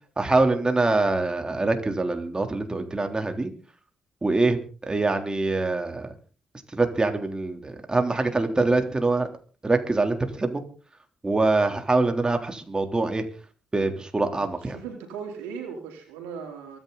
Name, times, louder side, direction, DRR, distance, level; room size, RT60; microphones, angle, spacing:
voice 1, 0.2-3.5 4.2-6.1 6.7-9.3 9.6-10.6 11.2-13.2 13.7-14.8, right 3 dB, 25° right, 5 dB, 3.5 m, -24 dB
voice 2, 14.3-16.8, right 6 dB, 85° right, 3 dB, 3.8 m, -38 dB
23.5 x 10.5 x 4.1 m, 0.38 s
hypercardioid pair, 45°, 3 cm